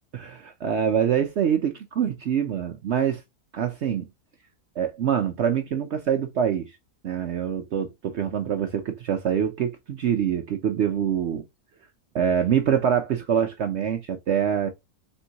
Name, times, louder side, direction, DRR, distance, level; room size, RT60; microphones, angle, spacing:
voice 1, 0.1-3.2 3.5-4.1 4.8-6.8 7.0-11.4 12.1-14.7, right 8 dB, 70° right, 0.6 m, -25 dB
4.4 x 3.5 x 2.8 m
omnidirectional pair, 1.7 m